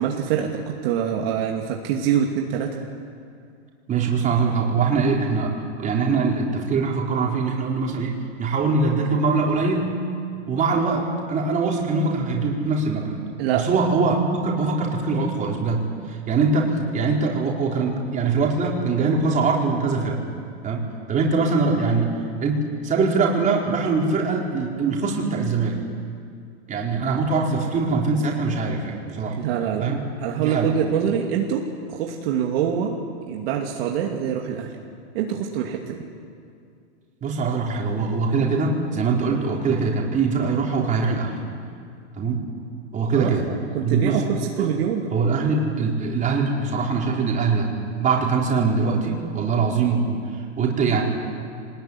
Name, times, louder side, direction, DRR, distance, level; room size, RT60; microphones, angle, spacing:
voice 1, 0.0-2.9 13.4-13.7 29.0-29.9 30.2-32.9 33.3-34.8 35.1-36.0 43.2-45.1, right 8 dB, 55° right, 0 dB, 2.7 m, -25 dB
voice 2, 3.9-9.9 10.5-13.2 13.5-20.2 20.6-22.1 22.4-25.8 26.7-29.4 29.8-30.0 30.4-30.7 37.2-41.3 42.2-42.5 42.9-43.5 43.8-44.2 44.6-44.7 45.1-47.7 48.0-51.0, right 4 dB, 20° right, -2 dB, 4.6 m, -22 dB
24.0 x 20.0 x 9.9 m, 2.3 s
supercardioid pair, 140°, 34 cm